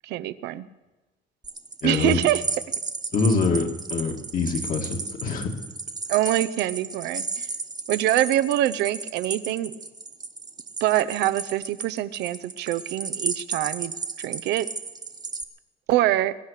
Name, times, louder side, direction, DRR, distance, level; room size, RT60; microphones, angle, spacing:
voice 1, 0.1-0.7 1.8-2.4 6.1-7.5 7.9-9.7 10.8-13.9 14.2-14.7 15.9-16.4, right 14 dB, 85° right, 14 dB, 0.7 m, -24 dB
sound 1, 1.4-15.4, right 4 dB, 25° right, 1.2 m, -34 dB
voice 2, 1.8-2.2 3.1-5.5, left 4 dB, 55° left, 3 dB, 2.2 m, -25 dB
22.0 x 9.9 x 6.6 m, 1.1 s
cardioid pair, 110°, 17 cm